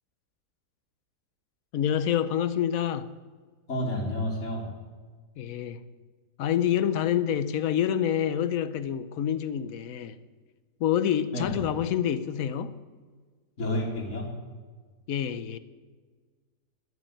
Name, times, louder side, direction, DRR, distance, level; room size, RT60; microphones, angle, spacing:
voice 1, 1.7-3.1 5.4-5.8 6.4-10.2 10.8-12.8 15.1-15.6, left 9 dB, 65° left, 1.0 m, -27 dB
voice 2, 3.7-4.7 11.3-11.5 13.6-14.3, left 1 dB, 45° left, 2.6 m, -30 dB
11.0 x 9.4 x 9.0 m
omnidirectional pair, 1.8 m